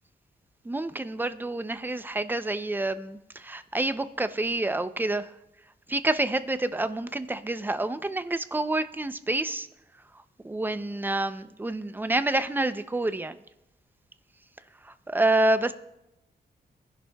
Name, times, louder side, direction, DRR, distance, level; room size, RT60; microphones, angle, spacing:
voice 1, 0.6-5.3 5.9-9.7 10.4-13.4 14.8-15.7, right 2 dB, 10° right, 11 dB, 0.5 m, -28 dB
23.5 x 11.0 x 2.3 m, 0.89 s
wide cardioid pair, 125°, 18 cm